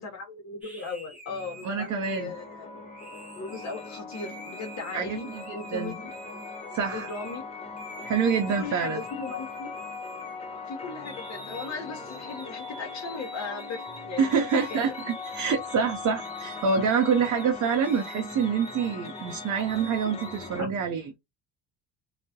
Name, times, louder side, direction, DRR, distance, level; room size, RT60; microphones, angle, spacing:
voice 1, 0.0-2.7 3.3-6.1 6.9-7.5 8.6-9.7 10.6-15.0 16.7-16.9 20.6-20.7, left 4 dB, 45° left, 0.8 m, -37 dB
sound 1, 0.6-7.4 7.8-10.7 11.0-20.5, right 2 dB, 5° right, 0.9 m, -47 dB
sound 2, 1.3-20.6, left 4 dB, 15° left, 0.5 m, -40 dB
voice 2, 1.6-2.3 4.9-5.4 5.7-5.9 6.7-7.1 8.0-9.0 14.2-21.0, right 6 dB, 45° right, 0.6 m, -26 dB
2.3 x 2.1 x 2.7 m
cardioid pair, 95°, 40 cm